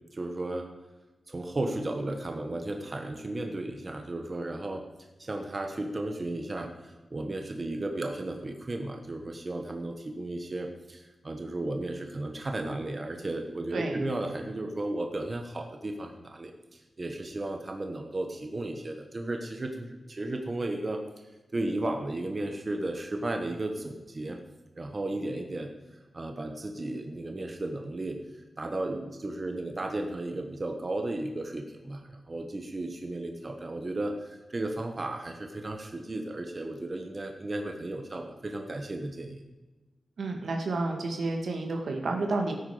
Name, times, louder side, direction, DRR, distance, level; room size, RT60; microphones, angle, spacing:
voice 1, 0.1-0.7 1.3-4.8 5.2-21.0 21.5-24.4 24.8-25.7 26.1-28.2 28.6-39.4, right 2 dB, 30° right, 3 dB, 1.3 m, -34 dB
voice 2, 40.2-42.6, right 3 dB, 85° right, 3 dB, 2.1 m, -30 dB
17.0 x 9.3 x 5.1 m, 1.1 s
wide cardioid pair, 160°, 0 cm